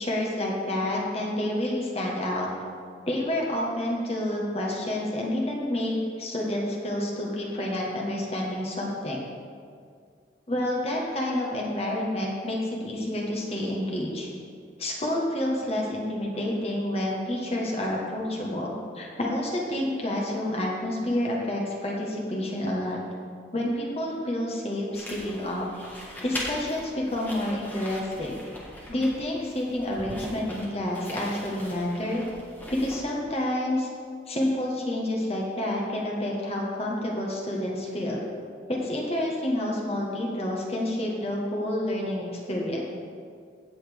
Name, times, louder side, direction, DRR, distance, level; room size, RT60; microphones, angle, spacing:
voice 1, 0.0-2.5 3.0-9.2 10.5-14.3 14.8-23.0 23.5-25.6 26.2-28.4 28.9-32.2 32.7-33.9 34.3-38.2 38.7-42.8, left 1 dB, 35° left, -3 dB, 1.5 m, -29 dB
sound 1, 24.9-33.3, equal, 10° left, 1.6 m, -40 dB
16.5 x 7.1 x 3.6 m, 2.2 s
head